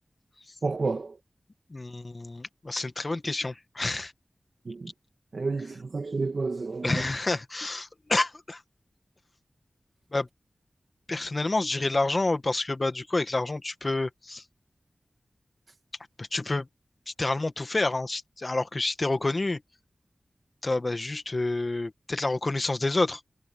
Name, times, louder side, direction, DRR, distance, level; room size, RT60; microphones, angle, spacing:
voice 1, 0.6-1.1 4.7-4.9 5.3-7.0, right 3 dB, 75° right, 2.1 m, -30 dB
voice 2, 1.7-4.1 6.8-8.6 10.1-10.3 11.1-14.4 16.2-16.7 17.2-19.6 20.6-23.2, left 2 dB, 45° left, 1.7 m, -28 dB
cardioid pair, 45°, 0 cm